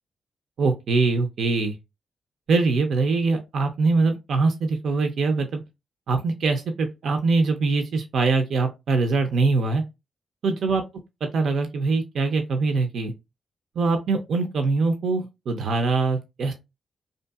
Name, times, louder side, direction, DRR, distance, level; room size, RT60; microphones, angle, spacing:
voice 1, 0.6-1.7 2.5-5.6 6.1-9.8 10.4-10.8 11.2-13.1 13.8-16.5, right 3 dB, 70° right, 0.4 m, -23 dB
2.7 x 2.4 x 2.3 m
supercardioid pair, 45°, 0 cm